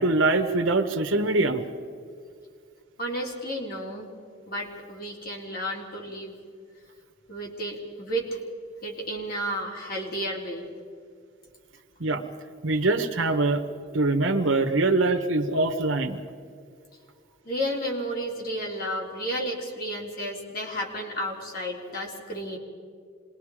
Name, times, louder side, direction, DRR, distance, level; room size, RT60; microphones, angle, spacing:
voice 1, 0.0-1.6 12.0-12.2 12.6-13.6 13.9-16.2, right 2 dB, 85° right, 5 dB, 1.3 m, -23 dB
voice 2, 3.0-4.1 4.5-6.4 7.3-8.4 8.8-10.7 17.4-22.6, equal, 50° left, -1 dB, 3.7 m, -32 dB
27.0 x 21.0 x 5.0 m, 2.2 s
head